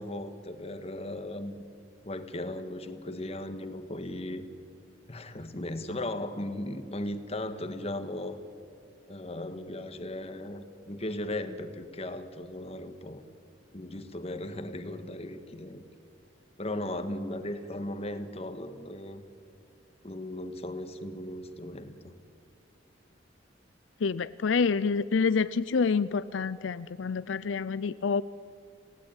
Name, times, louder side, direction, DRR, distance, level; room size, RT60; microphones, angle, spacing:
voice 1, 0.0-1.5 2.0-4.4 5.1-8.4 9.1-13.2 13.7-15.8 16.6-19.2 20.0-22.2, left 1 dB, 35° left, 8 dB, 1.6 m, -37 dB
voice 2, 24.0-28.2, left 5 dB, 80° left, 15 dB, 0.5 m, -27 dB
28.5 x 17.5 x 9.0 m, 2.5 s
head